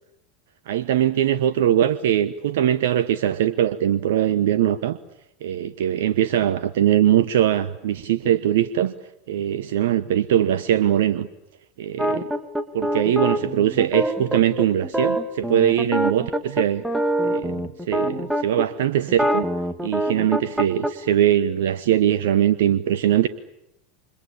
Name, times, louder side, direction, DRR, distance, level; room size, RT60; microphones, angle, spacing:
voice 1, 0.7-5.0 5.4-8.9 9.3-11.3 11.8-12.3 12.7-16.8 17.2-19.5 19.8-23.3, right 11 dB, 65° right, 14 dB, 1.0 m, -21 dB
sound 1, 12.0-18.6 19.1-20.9, right 1 dB, 5° right, 2.9 m, -24 dB
29.0 x 26.0 x 7.1 m, 0.83 s
figure-of-eight pair, 80°, 0 cm